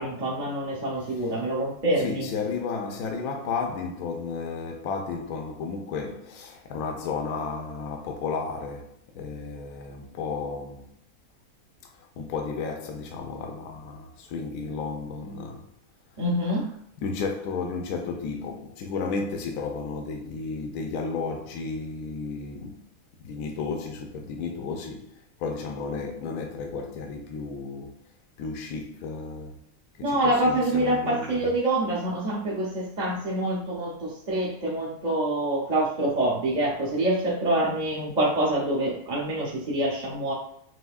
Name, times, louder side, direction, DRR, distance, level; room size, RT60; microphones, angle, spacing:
voice 1, 0.0-2.3 16.2-16.6 30.0-40.3, right 1 dB, 35° right, 0.7 m, -26 dB
voice 2, 2.0-11.0 12.2-15.7 17.0-22.9 23.2-28.0 28.4-29.6 30.0-31.5, left 4 dB, 75° left, 1.1 m, -33 dB
6.2 x 2.7 x 2.4 m
omnidirectional pair, 1.7 m